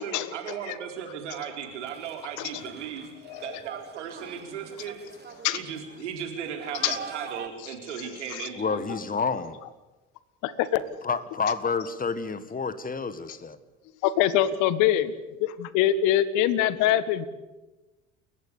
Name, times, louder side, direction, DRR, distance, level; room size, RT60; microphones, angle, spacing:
voice 1, 0.0-3.1 3.4-5.0 5.5-9.0, right 8 dB, 75° right, 4 dB, 4.2 m, -36 dB
sound 1, 1.6-7.5, right 6 dB, 30° right, 2.4 m, -44 dB
voice 2, 3.3-3.6 5.4-5.6 6.8-7.0 7.6-7.7 8.3-8.5 10.4-10.8 14.0-15.1 15.4-17.3, left 12 dB, 55° left, 16 dB, 1.5 m, -24 dB
voice 3, 8.6-9.6 11.0-13.6, left 5 dB, 25° left, 14 dB, 1.8 m, -29 dB
29.0 x 15.0 x 8.5 m, 1.1 s
figure-of-eight pair, 65°, 36 cm